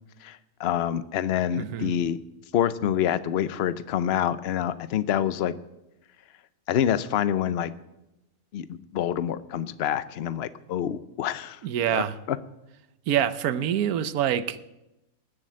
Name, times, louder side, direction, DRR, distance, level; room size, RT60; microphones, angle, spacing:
voice 1, 0.2-2.2 2.5-5.5 6.7-7.7 8.5-11.6 11.9-12.4, left 10 dB, 55° left, 15 dB, 0.8 m, -27 dB
voice 2, 1.6-1.9 11.6-12.2 13.1-14.6, right 10 dB, 85° right, 15 dB, 1.2 m, -26 dB
19.0 x 7.7 x 7.5 m, 0.95 s
omnidirectional pair, 1.5 m